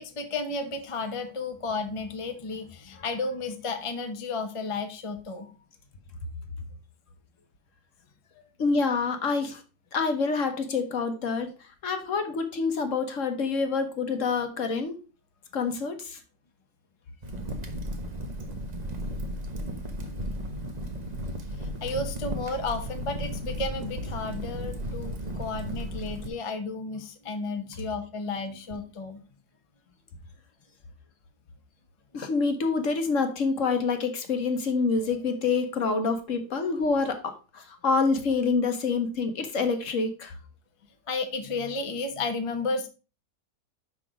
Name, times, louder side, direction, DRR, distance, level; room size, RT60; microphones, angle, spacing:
voice 1, 0.0-5.5 21.8-29.2 41.1-42.9, left 3 dB, 25° left, 6 dB, 0.8 m, -33 dB
voice 2, 8.6-9.6 9.9-11.5 11.8-15.0 15.5-16.2 32.1-40.3, left 4 dB, 55° left, 6 dB, 1.3 m, -27 dB
Crackle, 17.2-26.3, equal, 30° right, 1.0 m, -34 dB
5.9 x 5.9 x 4.7 m, 0.33 s
omnidirectional pair, 1.7 m